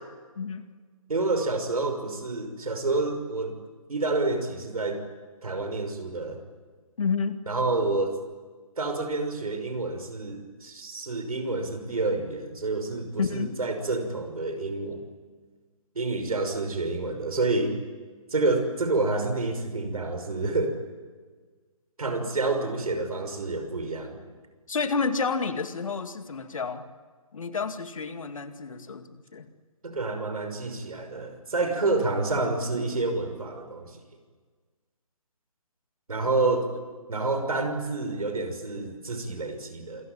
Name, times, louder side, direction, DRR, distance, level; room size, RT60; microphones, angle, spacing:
voice 1, 0.4-0.7 7.0-7.4 13.2-13.5 24.7-26.9 27.3-29.5, left 5 dB, 60° left, 8 dB, 2.3 m, -30 dB
voice 2, 1.1-3.5 3.9-5.0 5.4-6.4 7.5-8.2 8.8-15.0 15.9-17.8 18.3-20.8 22.0-24.2 29.8-34.0 36.1-36.7 37.1-40.0, right 3 dB, 75° right, 7 dB, 6.0 m, -28 dB
27.0 x 21.0 x 9.0 m, 1.5 s
figure-of-eight pair, 155°, 19 cm